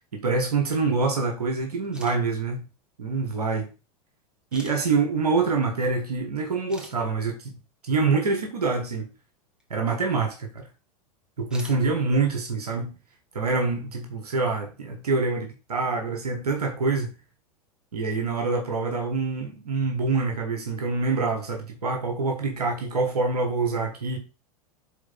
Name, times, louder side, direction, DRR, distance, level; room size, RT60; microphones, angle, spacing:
voice 1, 0.1-2.7 3.0-3.7 4.5-9.1 9.7-10.7 11.4-12.9 13.3-17.1 17.9-24.2, right 4 dB, 80° right, 1.5 m, -26 dB
sound 1, 1.8-2.2 3.2-3.3 4.5-4.8 6.2-6.3 6.7-6.9 9.6-9.7 11.4-11.8, equal, 5° right, 1.6 m, -44 dB
8.1 x 3.9 x 4.3 m
hypercardioid pair, 90°, 19 cm